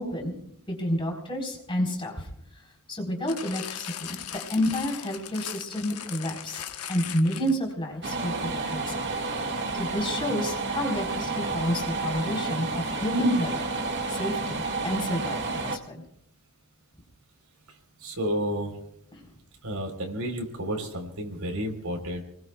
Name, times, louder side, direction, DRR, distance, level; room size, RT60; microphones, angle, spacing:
voice 1, 0.0-2.3 2.9-4.2 4.5-6.6 6.9-13.6 14.1-16.0 19.1-19.2, equal, 25° left, 0 dB, 4.1 m, -30 dB
sound 1, 3.3-7.7 8.4-8.5, left 10 dB, 90° left, 1.1 m, -38 dB
sound 2, 8.0-15.8, right 3 dB, 55° right, 1.7 m, -30 dB
voice 2, 18.0-18.7 19.6-22.2, equal, 85° right, 4 dB, 3.8 m, -31 dB
29.5 x 20.5 x 2.3 m, 0.71 s
head